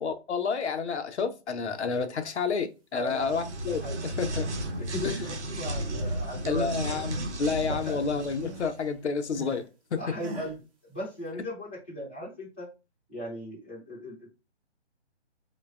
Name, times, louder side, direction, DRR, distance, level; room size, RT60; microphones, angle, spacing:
voice 1, 0.0-3.8 4.2-4.5 5.0-5.1 6.5-9.6 9.9-10.0, left 5 dB, 70° left, 0.6 m, -30 dB
voice 2, 2.9-3.4 3.8-4.0 4.8-7.0 7.7-8.1 10.0-10.6 10.9-12.7 13.1-14.3, equal, 10° left, 0.4 m, -37 dB
sound 1, 3.1-8.8, right 1 dB, 75° right, 0.7 m, -34 dB
sound 2, 4.9-5.5 5.8-7.2 7.5-9.7 10.2-10.6, equal, 30° right, 0.7 m, -45 dB
3.2 x 2.2 x 2.3 m
figure-of-eight pair, 145°, 35 cm